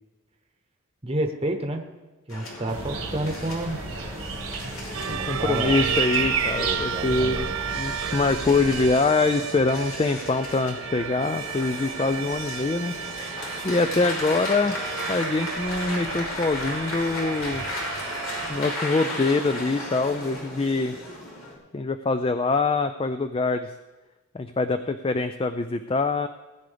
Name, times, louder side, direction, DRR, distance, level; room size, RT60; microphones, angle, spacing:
voice 1, 1.0-1.8 2.3-3.8 5.1-5.9 6.6-7.6, right 1 dB, 25° right, 4 dB, 0.9 m, -30 dB
sound 1, 2.3-21.6, left 1 dB, 75° left, 3.0 m, -35 dB
sound 2, 2.7-8.9, right 5 dB, 90° right, 1.6 m, -31 dB
sound 3, 4.9-18.7, right 8 dB, 65° right, 0.4 m, -34 dB
voice 2, 5.1-7.5 7.7-12.9 13.6-14.8 15.1-17.6 18.5-20.9 21.7-23.7 24.3-26.3, left 3 dB, 25° left, 9 dB, 0.3 m, -24 dB
19.0 x 9.6 x 3.4 m, 1.1 s
head